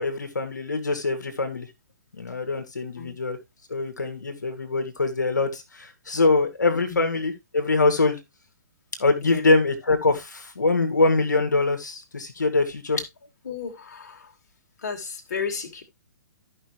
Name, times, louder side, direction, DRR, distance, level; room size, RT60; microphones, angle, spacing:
voice 1, 0.0-1.7 2.2-3.4 3.7-8.2 9.0-13.0, left 3 dB, 75° left, 2.1 m, -23 dB
voice 2, 13.4-14.3 14.8-15.8, left 5 dB, 55° left, 2.4 m, -33 dB
13.5 x 5.6 x 3.1 m
figure-of-eight pair, 125°, 10 cm